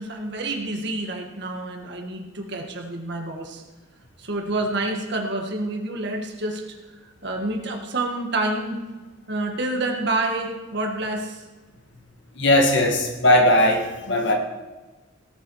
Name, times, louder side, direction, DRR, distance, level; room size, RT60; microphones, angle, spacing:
voice 1, 0.0-3.6 4.2-6.8 7.0-8.8 9.3-11.4, right 2 dB, 55° right, 2 dB, 1.9 m, -28 dB
voice 2, 12.4-14.3, left 1 dB, 55° left, 2 dB, 2.1 m, -18 dB
18.0 x 8.5 x 4.9 m, 1.3 s
head